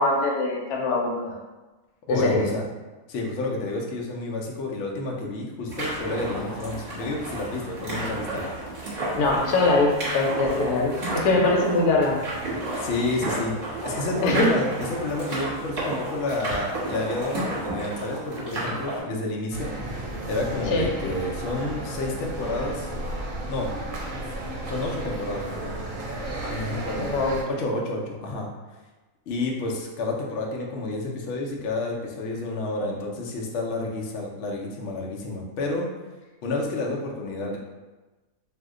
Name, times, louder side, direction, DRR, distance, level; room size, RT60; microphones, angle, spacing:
voice 1, 0.0-1.3 2.1-2.4 9.2-12.2 14.2-14.5 20.7-20.9 27.0-27.4, left 2 dB, 85° left, -1 dB, 1.1 m, -22 dB
voice 2, 2.1-2.7 3.1-8.4 12.8-13.5 13.8-22.9 23.5-23.7 24.6-25.8 26.4-27.1 27.5-28.5 29.3-35.9 36.4-37.6, left 2 dB, 65° left, -1 dB, 0.7 m, -30 dB
sound 1, 5.7-19.0, right 1 dB, 40° right, 1.1 m, -32 dB
sound 2, 19.5-27.4, right 1 dB, 70° right, 0.9 m, -33 dB
2.7 x 2.1 x 3.6 m, 1.2 s
omnidirectional pair, 1.6 m